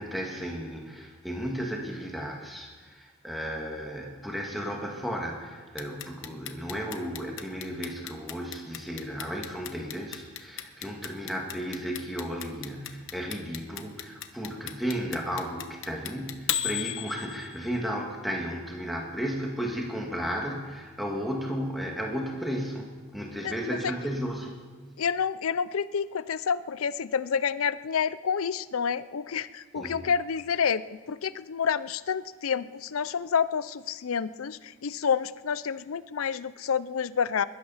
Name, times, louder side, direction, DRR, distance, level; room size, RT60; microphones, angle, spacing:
voice 1, 0.0-24.6 29.8-30.0, equal, ahead, -1 dB, 1.9 m, -34 dB
Clock, 5.8-17.8, left 11 dB, 60° left, 1.0 m, -34 dB
voice 2, 23.4-23.8 25.0-37.4, left 6 dB, 80° left, 17 dB, 0.5 m, -29 dB
21.5 x 12.0 x 5.7 m, 1.4 s
head